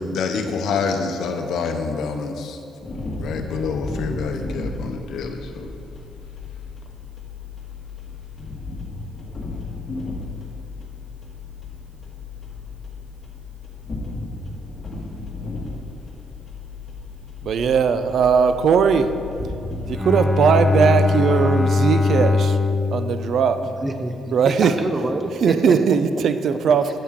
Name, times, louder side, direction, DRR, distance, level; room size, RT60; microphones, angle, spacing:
voice 1, 0.0-2.6 3.2-5.7, left 4 dB, 75° left, 5 dB, 0.7 m, -27 dB
sound 1, 2.8-20.0, left 3 dB, 30° left, 1.6 m, -34 dB
voice 2, 17.4-19.1 19.9-22.6 22.9-23.6 24.3-24.7 25.4-26.9, right 6 dB, 65° right, 10 dB, 0.4 m, -19 dB
Bowed string instrument, 19.9-24.4, left 3 dB, 15° left, 0.4 m, -21 dB
voice 3, 23.6-25.7, right 1 dB, 25° right, 6 dB, 0.7 m, -27 dB
8.5 x 7.4 x 3.6 m, 2.6 s
cardioid pair, 90°, 0 cm